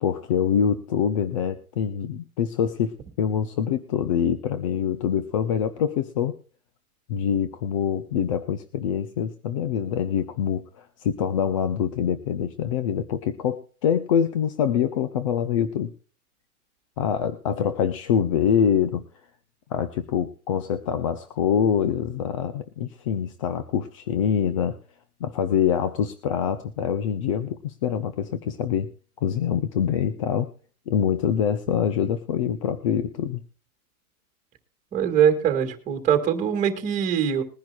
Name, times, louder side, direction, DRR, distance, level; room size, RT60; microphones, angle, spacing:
voice 1, 0.0-6.4 7.1-15.9 17.0-19.1 19.7-24.8 25.2-28.9 29.2-30.5 30.9-33.4, left 8 dB, 25° left, 11 dB, 0.5 m, -25 dB
voice 2, 34.9-37.4, right 8 dB, 15° right, 5 dB, 2.2 m, -22 dB
21.5 x 10.5 x 2.3 m, 0.40 s
hypercardioid pair, 160°, 44 cm